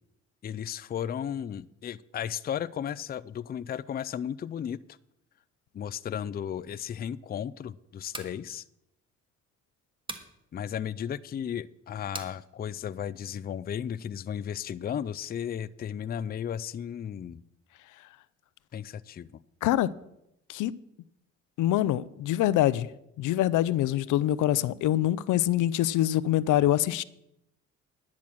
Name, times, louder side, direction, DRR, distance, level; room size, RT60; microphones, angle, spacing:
voice 1, 0.4-4.8 5.7-8.6 10.5-17.4 18.7-19.4, left 9 dB, 30° left, 0.4 m, -34 dB
sound 1, 8.1-8.4 10.1-10.3 12.1-12.4, right 2 dB, 15° right, 1.4 m, -39 dB
voice 2, 21.6-22.9 23.2-27.0, left 13 dB, 80° left, 0.6 m, -25 dB
10.5 x 7.2 x 6.1 m
cardioid pair, 90°, 30 cm